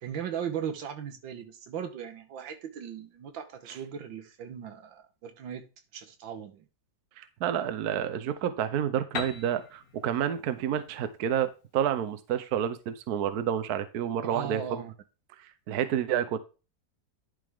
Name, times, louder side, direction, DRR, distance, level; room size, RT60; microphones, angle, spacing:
voice 1, 0.0-6.7 14.2-14.9, right 8 dB, 80° right, 1.9 m, -38 dB
voice 2, 7.2-14.8 15.7-16.4, right 9 dB, 65° right, 1.1 m, -29 dB
Piano, 9.1-12.8, left 6 dB, 55° left, 1.4 m, -41 dB
11.0 x 5.1 x 3.5 m
omnidirectional pair, 2.1 m